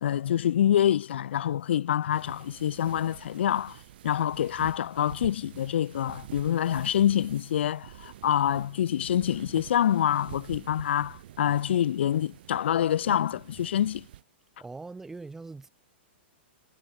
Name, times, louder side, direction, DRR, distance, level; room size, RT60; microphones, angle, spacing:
voice 1, 0.0-14.1, left 10 dB, 75° left, 0.5 m, -26 dB
sound 1, 2.1-14.2, right 13 dB, 55° right, 1.7 m, -47 dB
voice 2, 14.6-15.7, right 3 dB, 5° right, 3.6 m, -41 dB
hypercardioid pair, 155°, 6 cm